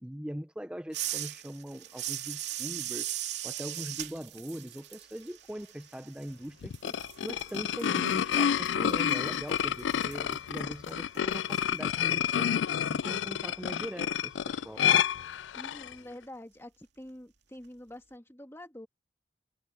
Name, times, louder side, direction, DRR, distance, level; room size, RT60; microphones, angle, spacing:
voice 1, 0.0-3.1 3.4-6.9 7.2-12.5 12.9-14.9, equal, 5° right, 0.5 m, -41 dB
sound 1, 0.9-6.5 6.7-11.6, right 13 dB, 70° right, 2.5 m, -39 dB
sound 2, 6.6-15.9, left 9 dB, 90° left, 0.4 m, -29 dB
voice 2, 15.5-18.9, left 1 dB, 15° left, 1.8 m, -47 dB
head